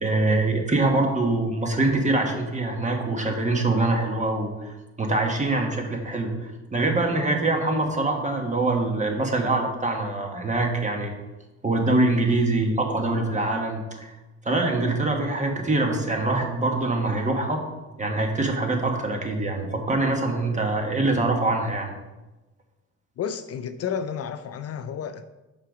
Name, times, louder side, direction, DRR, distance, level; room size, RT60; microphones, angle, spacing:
voice 1, 0.0-11.1 11.6-14.1 14.4-17.6 18.0-21.9, right 2 dB, 25° right, 2 dB, 1.3 m, -24 dB
voice 2, 23.2-25.3, left 7 dB, 55° left, 10 dB, 0.5 m, -31 dB
5.6 x 5.2 x 5.0 m, 1.1 s
cardioid pair, 90°, 30 cm